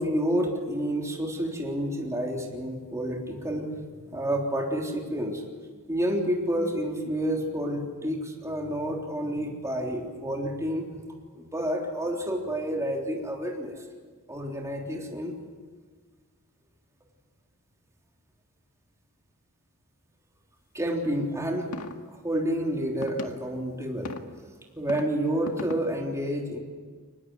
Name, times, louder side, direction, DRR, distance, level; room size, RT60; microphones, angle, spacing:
voice 1, 0.0-5.4 5.9-10.9 11.4-13.8 14.3-15.3 20.7-21.7 22.1-24.1 24.8-26.6, equal, 15° right, 0 dB, 3.6 m, -29 dB
sound 1, 21.7-21.9 23.0-23.3 24.0-24.2 24.8-25.0 25.5-25.8, left 2 dB, 85° left, 1.9 m, -35 dB
24.0 x 20.0 x 9.6 m, 1.5 s
head